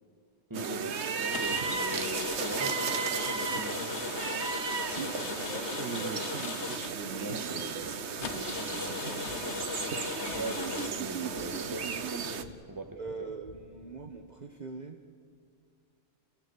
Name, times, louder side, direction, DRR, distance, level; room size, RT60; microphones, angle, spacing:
voice 1, 0.5-4.1 7.2-7.9 8.8-9.0 10.3-13.3, right 2 dB, 20° right, 5 dB, 1.7 m, -40 dB
sound 1, 0.5-12.4, right 6 dB, 85° right, 1.4 m, -34 dB
sound 2, 1.3-7.4 7.7-7.8 8.2-10.9, left 8 dB, 90° left, 1.1 m, -38 dB
voice 2, 4.8-9.6 13.0-15.0, right 4 dB, 40° right, 4 dB, 1.3 m, -43 dB
sound 3, 7.8-14.1, equal, 60° left, 5.4 m, -54 dB
29.5 x 16.5 x 8.3 m, 2.3 s
omnidirectional pair, 1.1 m